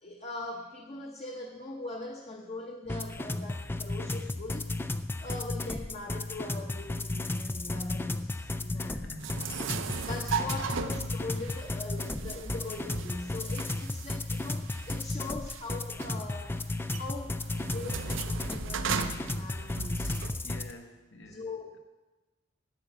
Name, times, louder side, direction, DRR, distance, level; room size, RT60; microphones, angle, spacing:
voice 1, 0.0-4.7 5.2-9.0 9.8-16.6 17.0-20.2 21.3-21.8, left 2 dB, 30° left, 1 dB, 0.9 m, -41 dB
sound 1, 2.9-20.7, left 2 dB, 10° left, 0.3 m, -34 dB
voice 2, 8.7-9.9 10.4-10.6 20.4-21.8, left 2 dB, 60° left, 6 dB, 1.1 m, -49 dB
sound 2, 9.2-20.4, right 5 dB, 65° right, 0.6 m, -37 dB
9.2 x 8.4 x 6.8 m, 1.2 s
head